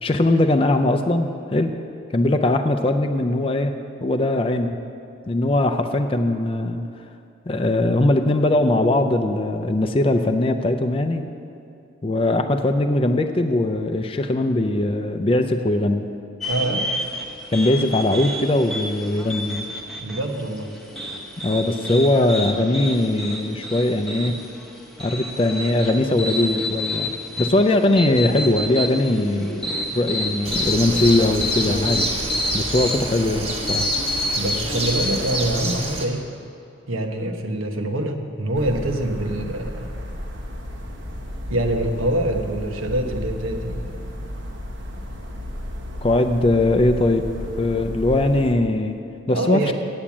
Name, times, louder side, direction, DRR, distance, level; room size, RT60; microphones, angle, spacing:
voice 1, 0.0-1.7 2.1-3.7 4.0-4.8 5.3-6.8 7.5-11.3 12.0-16.1 17.5-19.7 21.4-24.4 25.0-29.7 29.9-32.1 32.5-33.9 46.0-47.3 47.6-49.0 49.3-49.6, left 1 dB, 25° left, 6 dB, 0.4 m, -20 dB
sound 1, 16.4-35.4, left 1 dB, ahead, 0.8 m, -29 dB
voice 2, 16.5-16.9 20.0-20.7 32.6-32.7 34.3-36.3 36.9-39.9 41.5-44.0 49.3-49.7, right 1 dB, 80° right, 5 dB, 1.0 m, -25 dB
Bird, 30.4-36.0, right 2 dB, 30° right, 1.2 m, -28 dB
sound 2, 38.5-48.5, left 1 dB, 65° right, 1.2 m, -33 dB
8.7 x 8.6 x 7.2 m, 2.5 s
head